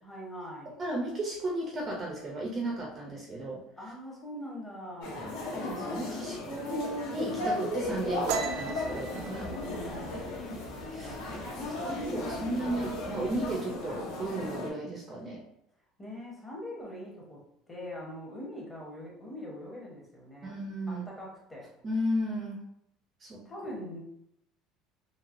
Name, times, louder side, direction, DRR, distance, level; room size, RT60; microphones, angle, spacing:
voice 1, 0.0-0.8 3.8-5.4 9.2-10.3 16.0-20.6 20.9-21.7 23.4-24.0, left 1 dB, 10° left, -3 dB, 0.7 m, -42 dB
voice 2, 0.8-3.6 5.5-9.4 10.9-11.2 11.7-15.4 20.4-21.0 21.8-22.6 23.2-23.4, right 1 dB, 20° right, -1 dB, 0.4 m, -34 dB
sound 1, 5.0-14.7, left 2 dB, 80° left, 0.9 m, -36 dB
sound 2, 7.8-13.5, equal, 50° left, 0.9 m, -49 dB
sound 3, 8.3-11.7 12.0-12.4 12.7-13.3 13.5-14.3, right 5 dB, 85° right, 0.4 m, -37 dB
3.1 x 2.7 x 2.4 m, 0.77 s
cardioid pair, 175°, 0 cm